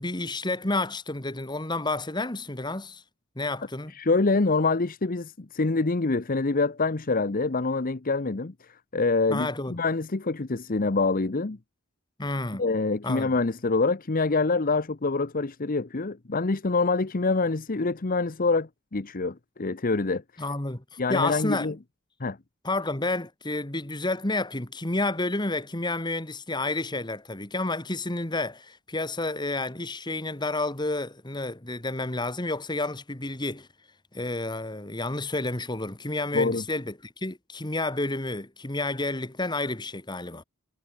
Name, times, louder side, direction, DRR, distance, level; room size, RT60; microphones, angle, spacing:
voice 1, 0.0-3.0 3.4-3.9 9.3-9.8 12.2-12.6 13.0-13.4 20.4-20.8 21.1-21.7 22.6-33.7 34.1-40.4, left 2 dB, 20° left, 1.9 m, -30 dB
voice 2, 3.9-8.5 8.9-11.6 12.6-20.2 21.0-21.7 22.2-22.4 36.3-36.6, left 3 dB, 40° left, 0.8 m, -25 dB
head